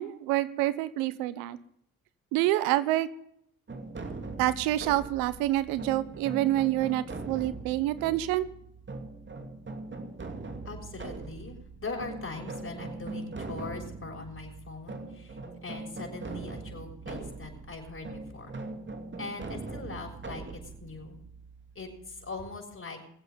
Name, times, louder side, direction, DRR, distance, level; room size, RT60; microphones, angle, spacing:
voice 1, 0.0-1.6 2.3-3.1 4.4-8.5, right 15 dB, 90° right, 16 dB, 1.0 m, -27 dB
sound 1, 3.7-22.4, right 3 dB, 35° right, 2.6 m, -41 dB
voice 2, 10.6-18.5 19.2-21.2 21.7-23.0, left 3 dB, 40° left, 0 dB, 6.5 m, -41 dB
23.0 x 8.0 x 5.2 m, 0.71 s
supercardioid pair, 55°, 34 cm